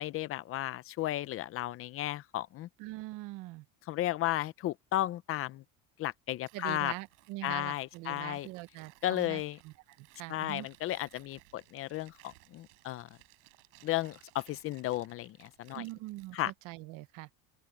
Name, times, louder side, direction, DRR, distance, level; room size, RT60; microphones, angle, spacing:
voice 1, 0.0-2.7 3.9-5.6 6.0-6.9 7.4-8.5 9.0-9.6 10.3-13.1 13.8-15.8 16.3-16.5, left 14 dB, 40° left, 0.7 m, -34 dB
voice 2, 2.8-3.7 6.5-10.7 15.7-17.3, right 20 dB, 65° right, 0.9 m, -43 dB
Tearing, 6.4-16.6, right 40 dB or more, 85° right, 8.0 m, -62 dB
open air
cardioid pair, 150°, 34 cm